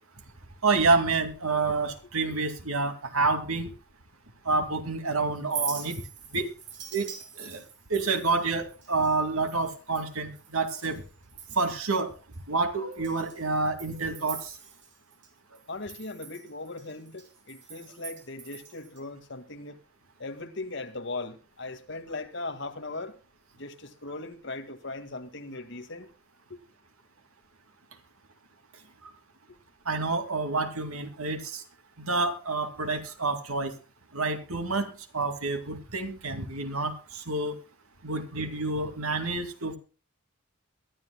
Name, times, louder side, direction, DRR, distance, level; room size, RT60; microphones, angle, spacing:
voice 1, 0.6-3.7 4.5-6.0 6.3-6.5 6.9-7.1 7.4-7.6 7.9-11.0 11.6-12.1 12.5-14.5 29.9-31.6 32.0-33.7 34.1-37.6 38.0-39.8, right 3 dB, 90° right, 2.4 m, -28 dB
Chink clink, 5.4-11.0 11.3-11.9 12.3-12.4 12.9-15.3 15.5-19.0, right 7 dB, 55° right, 3.3 m, -43 dB
voice 2, 15.7-19.8 20.2-23.2 23.5-26.1 26.5-26.6 29.5-29.6, left 2 dB, 55° left, 2.0 m, -39 dB
22.5 x 12.5 x 2.3 m
head